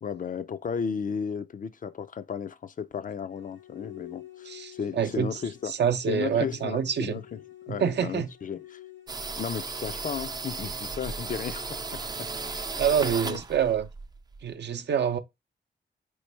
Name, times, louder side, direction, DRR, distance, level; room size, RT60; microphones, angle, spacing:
voice 1, 0.0-5.7 6.1-7.4 7.7-8.8 9.4-12.3 13.2-13.4, left 7 dB, 45° left, 0.4 m, -34 dB
sound 1, 3.3-9.1, left 14 dB, 85° left, 1.4 m, -48 dB
voice 2, 4.5-7.2 7.7-8.3 12.8-13.9 14.4-15.2, right 8 dB, 70° right, 0.6 m, -27 dB
sound 2, 9.1-14.5, right 4 dB, 20° right, 0.4 m, -35 dB
4.3 x 3.1 x 3.2 m
cardioid pair, 75°, 18 cm